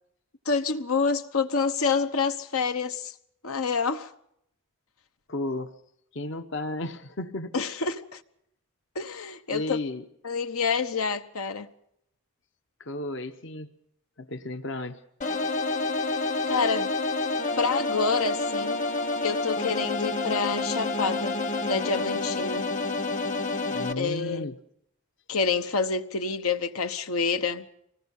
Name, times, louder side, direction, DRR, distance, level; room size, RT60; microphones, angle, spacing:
voice 1, 0.4-3.1 3.4-4.1 7.5-8.2 8.9-9.8 10.2-11.7 16.5-16.9 17.6-18.8 19.2-21.4 21.6-22.7 24.0-24.6 25.3-27.7, left 5 dB, 80° left, 1.1 m, -27 dB
voice 2, 5.3-5.7 6.1-7.5 9.5-10.0 12.8-13.7 14.2-15.0 23.7-24.5, left 2 dB, 55° left, 0.9 m, -33 dB
sound 1, 15.2-23.9, left 3 dB, 35° left, 1.1 m, -28 dB
25.0 x 19.5 x 5.5 m
head